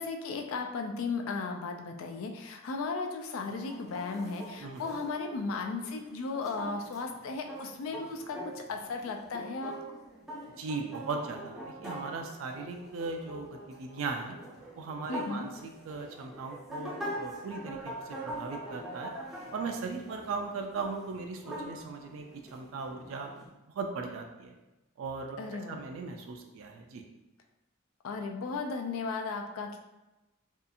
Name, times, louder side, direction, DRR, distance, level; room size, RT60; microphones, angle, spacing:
voice 1, 0.0-9.7 15.1-15.5 25.4-25.8 28.0-29.8, left 4 dB, 85° left, 4 dB, 0.4 m, -35 dB
sound 1, 3.7-23.5, right 1 dB, ahead, 0.4 m, -44 dB
voice 2, 10.6-14.4 14.8-17.9 18.2-19.1 19.5-23.3 23.8-24.6 25.0-27.0, right 4 dB, 80° right, 4 dB, 0.3 m, -38 dB
2.7 x 2.3 x 2.5 m, 1.0 s
head